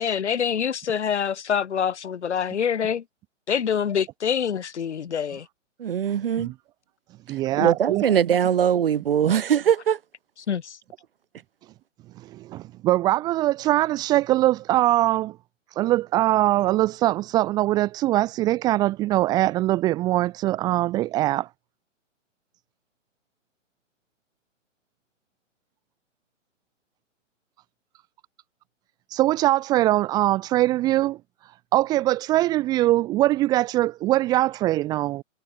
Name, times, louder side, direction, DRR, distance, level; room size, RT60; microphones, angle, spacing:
voice 1, 0.0-3.0 3.5-5.5 7.6-7.7 10.5-10.8, left 7 dB, 60° left, 3.9 m, -25 dB
voice 2, 5.8-6.5 7.3-10.0, right 9 dB, 45° right, 1.2 m, -22 dB
voice 3, 7.3-8.0 12.2-15.4 15.8-21.5 29.1-31.2 31.7-35.2, right 15 dB, 10° right, 1.3 m, -22 dB
hypercardioid pair, 170°, 38 cm